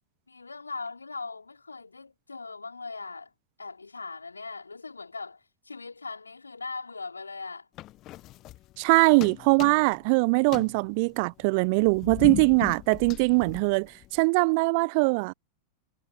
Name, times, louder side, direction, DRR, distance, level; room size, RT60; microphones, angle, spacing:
voice 1, 0.3-3.3 3.6-7.7, left 4 dB, 80° left, 3.7 m, -40 dB
sound 1, 7.8-8.9 9.2-10.1 10.4-14.2, left 16 dB, 35° left, 1.2 m, -38 dB
voice 2, 8.8-15.3, right 31 dB, 45° right, 0.9 m, -22 dB
figure-of-eight pair, 90°, 0 cm